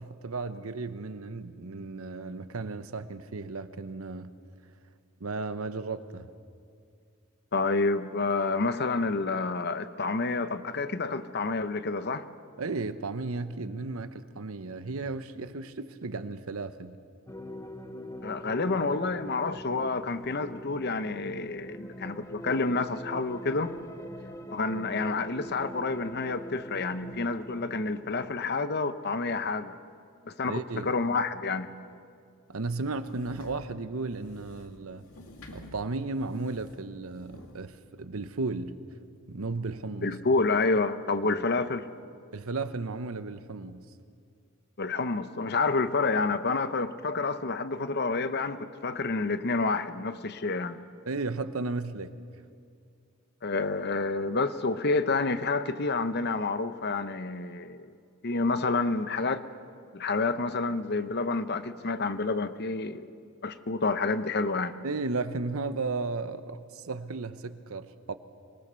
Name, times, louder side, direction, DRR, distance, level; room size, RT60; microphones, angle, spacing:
voice 1, 0.0-4.3 5.2-6.3 12.6-17.0 30.5-30.9 32.5-35.1 35.5-38.8 39.3-40.2 42.3-43.8 51.1-52.1 64.8-68.1, right 3 dB, 75° right, 0.9 m, -34 dB
voice 2, 7.5-12.3 18.2-23.7 24.5-29.8 30.3-31.7 40.0-41.8 44.8-50.8 53.4-57.9 58.2-59.4 59.9-63.1 63.4-64.8, left 3 dB, 50° left, 0.8 m, -29 dB
sound 1, 17.3-28.5, equal, 15° left, 0.9 m, -43 dB
sound 2, 32.6-37.6, left 1 dB, 85° left, 2.2 m, -51 dB
24.5 x 19.0 x 6.9 m
head